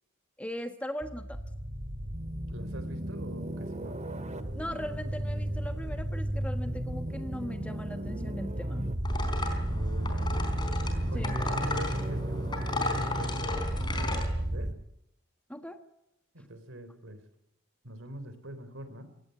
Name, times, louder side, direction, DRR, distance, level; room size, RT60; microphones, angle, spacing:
voice 1, 0.4-1.4 4.5-8.9 11.1-11.4 15.5-15.8, equal, 5° left, 7 dB, 1.4 m, -39 dB
sound 1, 1.0-14.7, right 1 dB, 35° right, 2.0 m, -33 dB
voice 2, 2.5-4.0 9.7-10.5 11.1-14.7 16.3-17.2 17.8-19.1, right 1 dB, 70° right, 11 dB, 3.9 m, -44 dB
sound 2, 9.0-14.3, left 2 dB, 20° left, 4.3 m, -35 dB
27.0 x 17.0 x 9.5 m, 0.83 s
head